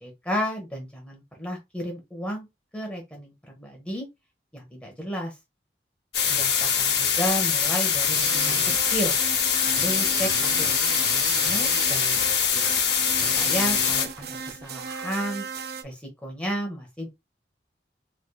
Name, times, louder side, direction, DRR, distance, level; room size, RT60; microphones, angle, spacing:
voice 1, 0.0-2.5 2.7-4.1 4.5-5.3 6.3-8.6 8.9-9.2 9.6-10.8 11.1-12.7 13.4-15.4 15.8-17.1, equal, 5° left, 1.0 m, -33 dB
sound 1, 6.1-14.1, left 7 dB, 75° left, 0.9 m, -23 dB
sound 2, 8.1-15.8, right 6 dB, 65° right, 0.5 m, -35 dB
4.0 x 3.2 x 2.2 m
head